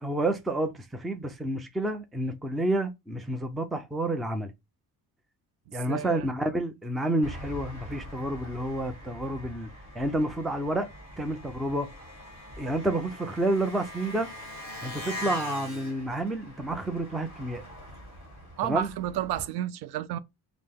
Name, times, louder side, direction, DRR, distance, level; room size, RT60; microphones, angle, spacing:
voice 1, 0.0-4.5 5.7-9.7 10.0-10.9 11.2-11.9 12.6-14.3 14.8-17.6 18.6-18.9, right 1 dB, ahead, 0.3 m, -29 dB
voice 2, 5.7-6.3 18.6-20.2, right 11 dB, 75° right, 0.5 m, -31 dB
Engine, 7.2-19.4, left 1 dB, 15° right, 1.9 m, -42 dB
5.3 x 2.0 x 3.4 m
cardioid pair, 165°, 39 cm